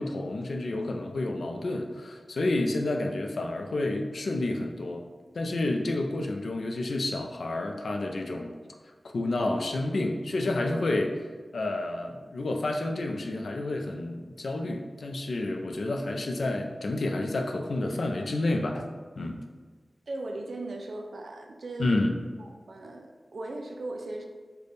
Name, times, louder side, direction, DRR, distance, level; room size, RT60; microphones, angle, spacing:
voice 1, 0.0-5.0 5.3-8.5 9.1-11.1 11.5-18.9 19.2-19.4 21.8-22.2, left 2 dB, 85° left, 3 dB, 0.3 m, -29 dB
voice 2, 20.1-22.0 22.4-24.3, right 2 dB, 85° right, 3 dB, 0.4 m, -38 dB
3.3 x 2.2 x 3.9 m, 1.4 s
wide cardioid pair, 65°, 0 cm